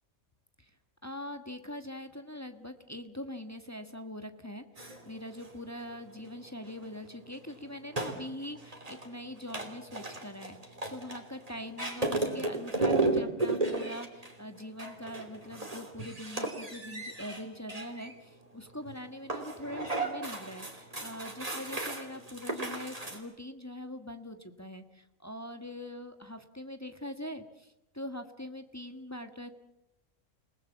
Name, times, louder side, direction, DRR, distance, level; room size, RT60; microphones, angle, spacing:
voice 1, 1.0-29.5, left 1 dB, 10° left, 7 dB, 1.4 m, -43 dB
sound 1, 4.8-23.2, right 2 dB, 25° right, 3.1 m, -36 dB
29.0 x 19.5 x 7.2 m, 0.89 s
omnidirectional pair, 1.5 m